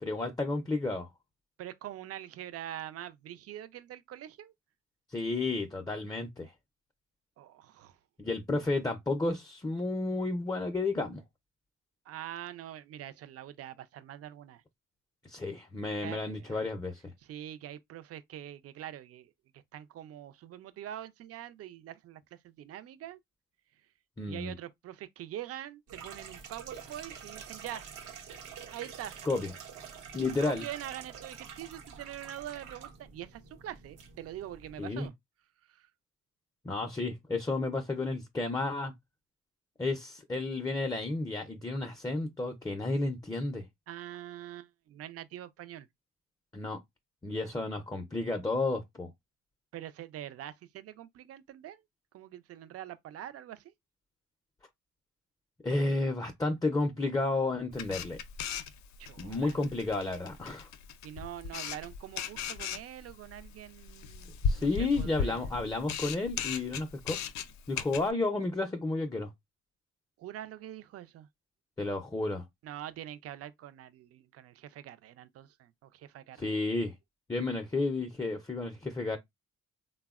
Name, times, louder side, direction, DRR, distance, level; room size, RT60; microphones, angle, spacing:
voice 1, 0.0-1.1 5.1-6.5 8.2-11.2 15.2-17.1 24.2-24.5 29.3-29.5 30.1-30.6 34.8-35.1 36.6-38.9 39.8-43.6 46.5-46.8 47.2-49.1 55.6-58.2 59.2-60.7 64.4-67.2 67.7-69.3 71.8-72.4 76.4-76.9 77.3-79.2, left 2 dB, 15° left, 0.4 m, -32 dB
voice 2, 1.6-4.5 7.4-8.0 12.1-14.6 16.0-16.6 17.2-23.2 24.3-27.9 28.7-29.2 30.4-35.1 35.7-35.9 43.9-45.9 47.3-47.5 49.7-51.8 52.1-53.7 59.0-59.6 61.0-65.6 70.2-71.3 72.6-76.6, right 12 dB, 50° right, 0.4 m, -44 dB
sound 1, 25.9-35.1, right 7 dB, 85° right, 0.8 m, -47 dB
Camera, 57.7-68.1, left 6 dB, 65° left, 0.5 m, -37 dB
3.3 x 2.1 x 2.3 m
cardioid pair, 90°, 30 cm